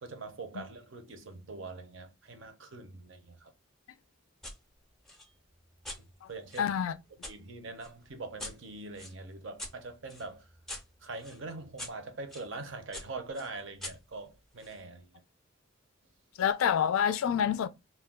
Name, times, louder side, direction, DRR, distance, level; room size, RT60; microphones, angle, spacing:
voice 1, 0.0-3.5 6.0-6.7 7.3-10.5 11.0-15.2, right 3 dB, 65° right, 0.6 m, -43 dB
sound 1, 4.4-4.6 5.1-7.4 7.8-12.5 12.9-14.8, left 1 dB, ahead, 0.5 m, -46 dB
voice 2, 6.6-6.9 16.4-17.7, left 8 dB, 85° left, 0.3 m, -27 dB
2.3 x 2.2 x 3.4 m
head